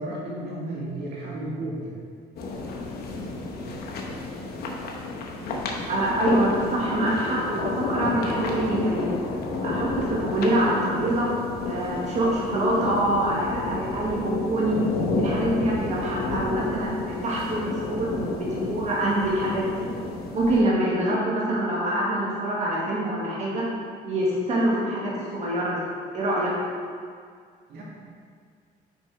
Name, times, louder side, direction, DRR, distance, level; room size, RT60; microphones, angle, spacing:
voice 1, 0.0-1.9 27.7-27.8, right 1 dB, 70° right, -5 dB, 1.9 m, -33 dB
sound 1, 2.4-20.6, left 2 dB, 65° left, 1.0 m, -31 dB
voice 2, 5.9-9.1 9.6-11.3 11.6-14.8 15.2-18.1 18.3-19.9 20.3-23.6 24.0-25.8 26.1-26.5, right 1 dB, 40° right, -6 dB, 1.5 m, -25 dB
6.0 x 5.2 x 4.7 m, 2.1 s
cardioid pair, 110°, 17 cm